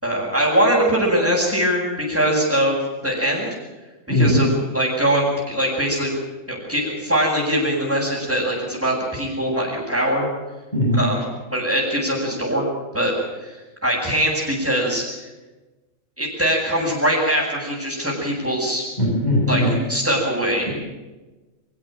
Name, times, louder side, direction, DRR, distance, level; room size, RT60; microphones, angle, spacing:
voice 1, 0.0-3.5 4.1-6.1 6.5-10.3 10.9-11.2 11.5-12.7 12.9-13.1 13.4-13.6 13.8-15.3 16.2-18.9 19.5-19.6 19.9-20.7, equal, 10° right, -8 dB, 7.7 m, -22 dB
voice 2, 19.0-19.7, left 1 dB, 30° left, -4 dB, 8.3 m, -19 dB
24.5 x 16.0 x 9.1 m, 1.2 s
omnidirectional pair, 1.4 m